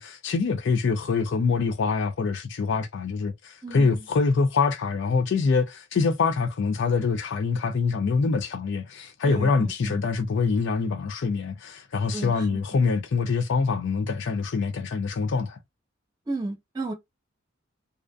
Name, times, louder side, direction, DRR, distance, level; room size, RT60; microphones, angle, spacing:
voice 1, 0.0-15.6, left 4 dB, 60° left, 0.4 m, -25 dB
voice 2, 3.6-4.1 9.2-10.1 12.1-12.8 16.3-16.9, right 2 dB, 20° right, 0.8 m, -34 dB
2.5 x 2.4 x 2.2 m
head